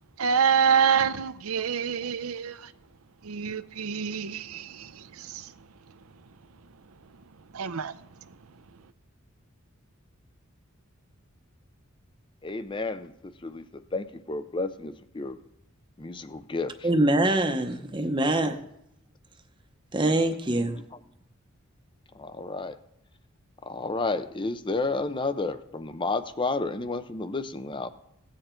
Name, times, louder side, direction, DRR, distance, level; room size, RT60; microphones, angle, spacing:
voice 1, 0.2-2.6 3.2-4.9 5.3-5.4 7.5-7.9, right 7 dB, 85° right, 0.6 m, -26 dB
voice 2, 12.4-15.4 16.0-16.9 20.1-20.2 22.1-22.8 23.6-27.9, left 3 dB, 25° left, 0.5 m, -31 dB
voice 3, 16.8-18.5 19.9-20.8, right 1 dB, 20° right, 0.8 m, -24 dB
17.0 x 9.0 x 4.4 m
head